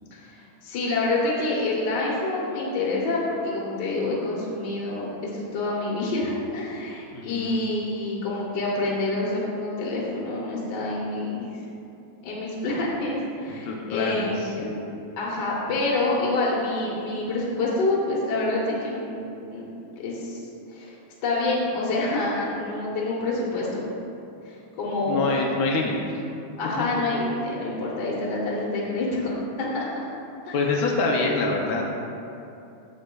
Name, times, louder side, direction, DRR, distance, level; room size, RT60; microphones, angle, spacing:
voice 1, 0.1-11.5 12.2-14.8 15.2-19.2 19.5-19.7 20.0-20.9 21.2-23.9 24.4-25.4 26.6-30.1 30.5-30.6, left 2 dB, 60° left, -5 dB, 1.4 m, -27 dB
voice 2, 7.1-7.6 13.5-14.3 25.1-25.9 30.5-31.9, left 3 dB, 80° left, -1 dB, 0.8 m, -25 dB
8.5 x 6.6 x 2.3 m, 2.7 s
omnidirectional pair, 2.3 m